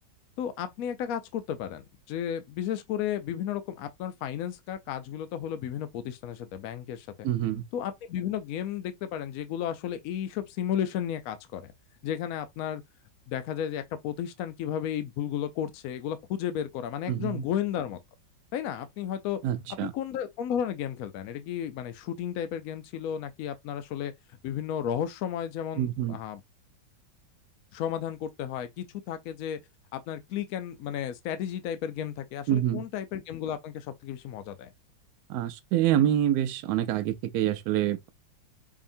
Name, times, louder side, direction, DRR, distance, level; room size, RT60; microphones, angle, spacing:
voice 1, 0.4-7.3 7.7-11.6 12.0-12.8 13.3-18.0 18.5-19.4 19.8-24.1 24.4-26.4 27.7-29.6 29.9-34.7, left 9 dB, 85° left, 0.7 m, -33 dB
voice 2, 7.2-7.6 17.1-17.4 19.4-19.9 25.8-26.2 32.5-32.8 35.3-38.1, right 11 dB, 75° right, 0.9 m, -26 dB
4.8 x 2.8 x 2.6 m
omnidirectional pair, 2.1 m